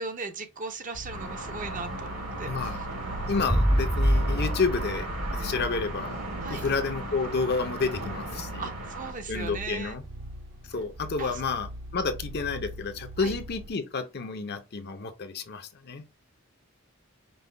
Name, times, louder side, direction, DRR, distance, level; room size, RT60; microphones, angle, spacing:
voice 1, 0.0-2.5 6.4-6.7 8.6-10.0 11.2-11.4 13.2-13.3, right 4 dB, 40° right, 0.7 m, -37 dB
sound 1, 0.9-13.7, right 1 dB, 65° right, 1.1 m, -42 dB
sound 2, 1.1-9.1, right 1 dB, 80° right, 2.1 m, -37 dB
voice 2, 2.5-2.8 3.2-5.1 5.3-6.2 6.5-8.6 9.3-10.0 10.7-16.0, left 4 dB, 50° left, 0.6 m, -30 dB
sound 3, 3.1-5.9, equal, ahead, 0.6 m, -26 dB
5.4 x 2.2 x 3.2 m
head